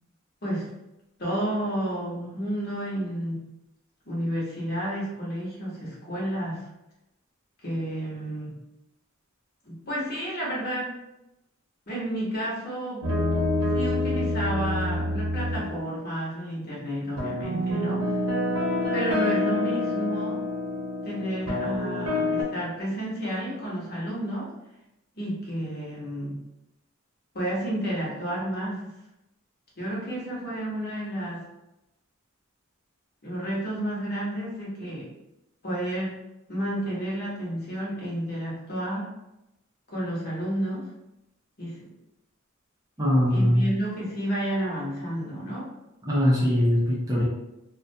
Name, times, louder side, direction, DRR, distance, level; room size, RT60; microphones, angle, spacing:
voice 1, 1.2-3.4 4.1-6.7 7.6-8.6 9.6-10.9 11.9-13.1 13.7-18.1 18.9-20.4 21.0-24.5 25.1-26.4 27.3-28.9 29.8-31.4 33.2-35.1 35.6-36.1 36.5-39.1 39.9-40.8 41.6-41.8 43.3-45.7, right 1 dB, 50° left, -6 dB, 0.9 m, -31 dB
sound 1, 13.0-16.0 17.2-22.4, left 1 dB, 80° right, 0.9 m, -27 dB
voice 2, 43.0-43.7 46.1-47.2, equal, 15° right, -7 dB, 0.6 m, -21 dB
2.4 x 2.2 x 2.6 m, 0.92 s
head